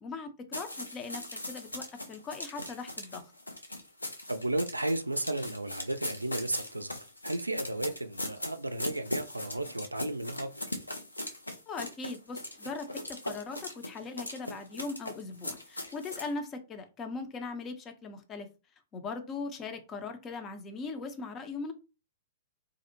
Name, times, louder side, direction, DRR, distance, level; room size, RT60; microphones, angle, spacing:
voice 1, 0.0-3.2 11.7-18.5 18.9-21.7, left 4 dB, 25° left, 0.5 m, -40 dB
sound 1, 0.5-16.3, left 1 dB, 85° left, 0.4 m, -40 dB
voice 2, 4.3-10.7, right 1 dB, 85° right, 0.3 m, -34 dB
2.6 x 2.0 x 2.7 m
figure-of-eight pair, 105°, 0 cm